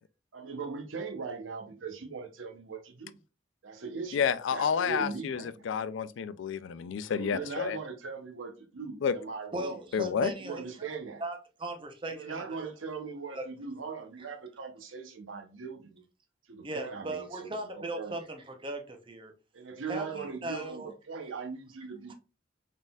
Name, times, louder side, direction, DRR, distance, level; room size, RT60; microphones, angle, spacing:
voice 1, 0.3-3.2 3.6-4.2 4.5-5.5 7.1-9.8 10.4-11.2 12.1-16.0 16.5-18.2 19.5-22.1, right 5 dB, 90° right, 0.8 m, -40 dB
voice 2, 4.1-7.8 9.0-9.1 9.9-10.3, left 6 dB, 75° left, 0.3 m, -30 dB
voice 3, 9.5-10.7 11.2-12.4 13.3-13.5 16.6-19.3 19.9-20.9, right 1 dB, 25° right, 0.7 m, -38 dB
4.0 x 3.7 x 2.3 m
head